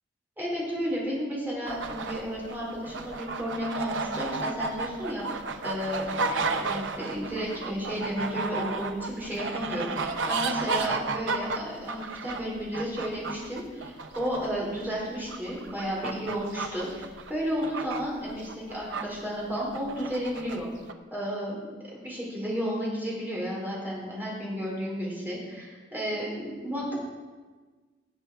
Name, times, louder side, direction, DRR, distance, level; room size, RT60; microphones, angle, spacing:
voice 1, 0.4-20.7 21.1-21.6 21.9-26.9, equal, 10° right, -6 dB, 4.2 m, -33 dB
sound 1, 1.7-19.0 19.5-20.6 20.9-21.0, right 3 dB, 90° right, 0.8 m, -33 dB
18.0 x 7.9 x 4.7 m, 1.4 s
head